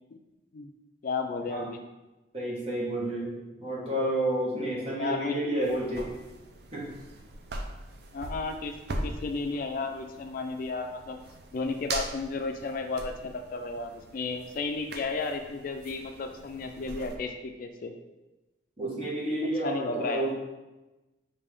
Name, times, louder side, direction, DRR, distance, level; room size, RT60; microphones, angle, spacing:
voice 1, 1.0-1.8 4.9-5.4 8.1-11.2 11.5-17.9 19.6-20.3, left 3 dB, 50° left, 5 dB, 0.3 m, -33 dB
voice 2, 2.3-6.1 6.7-6.9 18.8-20.3, right 1 dB, 35° right, -5 dB, 1.2 m, -30 dB
sound 1, 5.6-17.2, right 2 dB, 60° right, 0.5 m, -41 dB
5.2 x 2.6 x 3.4 m, 1.1 s
head